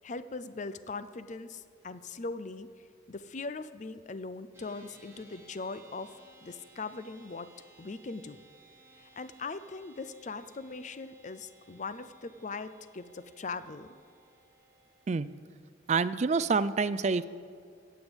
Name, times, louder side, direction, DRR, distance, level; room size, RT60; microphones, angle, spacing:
voice 1, 0.0-2.7 3.1-6.1 6.4-7.5 7.8-8.4 9.0-14.0, left 3 dB, 35° left, 13 dB, 0.5 m, -40 dB
sound 1, 4.5-15.4, right 3 dB, 15° right, 1.6 m, -60 dB
voice 2, 15.9-17.2, right 4 dB, 35° right, 15 dB, 0.3 m, -27 dB
16.5 x 7.1 x 8.0 m, 2.3 s
head